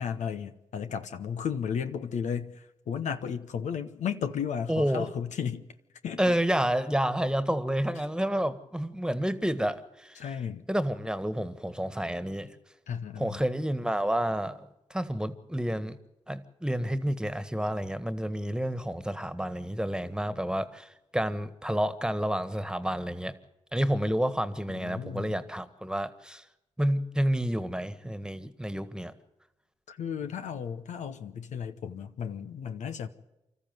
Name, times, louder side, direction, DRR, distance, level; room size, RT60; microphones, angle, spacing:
voice 1, 0.0-5.7 6.0-6.4 10.2-10.6 12.9-13.4 24.7-25.4 29.9-33.1, left 7 dB, 80° left, 1.0 m, -34 dB
voice 2, 4.7-5.1 6.2-10.2 10.7-12.5 13.2-14.6 14.9-16.0 16.3-23.3 23.7-26.4 26.8-29.1, equal, 5° right, 1.6 m, -29 dB
25.0 x 13.5 x 9.4 m
supercardioid pair, 40°, 12 cm